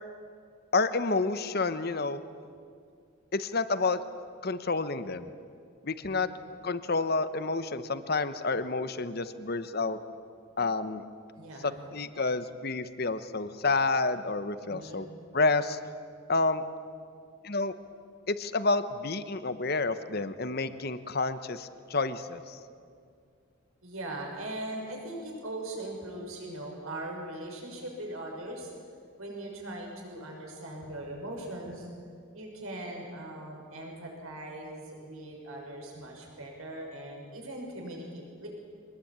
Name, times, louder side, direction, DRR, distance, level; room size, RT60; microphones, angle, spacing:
voice 1, 0.7-2.2 3.3-4.0 4.4-5.3 5.8-6.3 6.6-10.0 10.6-11.0 11.6-15.1 15.3-15.8 16.3-16.6 17.4-17.7 18.3-22.6, left 3 dB, 45° left, 12 dB, 1.0 m, -29 dB
voice 2, 11.4-11.8 14.7-15.0 23.8-28.7 29.2-31.9 32.3-38.5, right 1 dB, 75° right, 0 dB, 6.3 m, -40 dB
24.0 x 20.0 x 8.8 m, 2.3 s
head